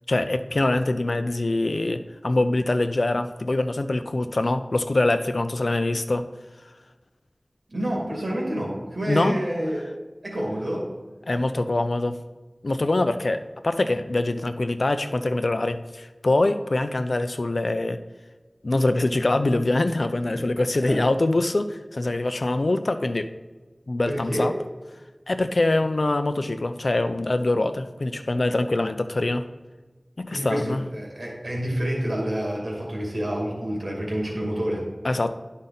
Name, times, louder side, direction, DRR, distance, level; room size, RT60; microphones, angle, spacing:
voice 1, 0.1-6.3 9.1-9.4 11.3-12.2 12.6-18.0 18.6-23.3 23.9-24.5 25.3-29.5 30.2-30.8 35.0-35.3, left 2 dB, 80° left, 9 dB, 0.5 m, -24 dB
voice 2, 7.7-9.8 10.2-10.9 20.3-20.4 20.8-21.0 24.1-24.5 30.3-34.9, right 1 dB, 80° right, -2 dB, 2.3 m, -28 dB
9.9 x 5.2 x 4.1 m, 1.3 s
wide cardioid pair, 40°, 0 cm